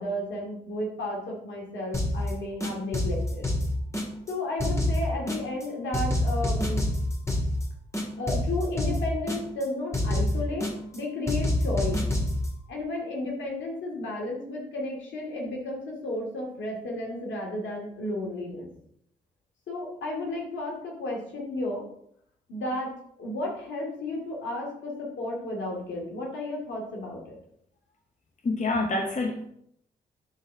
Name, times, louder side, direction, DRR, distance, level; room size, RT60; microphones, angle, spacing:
voice 1, 0.0-3.5 4.3-6.8 8.2-12.0 12.7-18.7 19.7-21.8 22.5-22.9 23.2-27.4, left 1 dB, 70° left, -1 dB, 2.4 m, -33 dB
sound 1, 1.9-2.3 2.6-4.3 4.6-5.6 5.9-7.6 7.9-9.6 9.9-11.0 11.3-12.5, left 1 dB, 15° left, 2.2 m, -27 dB
voice 2, 28.4-29.5, left 2 dB, 40° left, 2 dB, 1.1 m, -27 dB
11.0 x 4.1 x 3.6 m, 0.70 s
hypercardioid pair, 40°, 20 cm